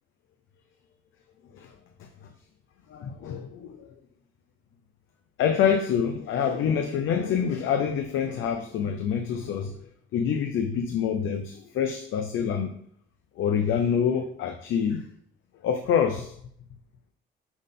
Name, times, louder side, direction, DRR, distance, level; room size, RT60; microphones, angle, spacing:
voice 1, 2.9-3.9 5.4-9.7 10.1-12.7 13.4-15.0 15.6-16.3, left 7 dB, 80° left, 0.7 m, -26 dB
6.2 x 3.7 x 5.3 m
cardioid pair, 90°, 20 cm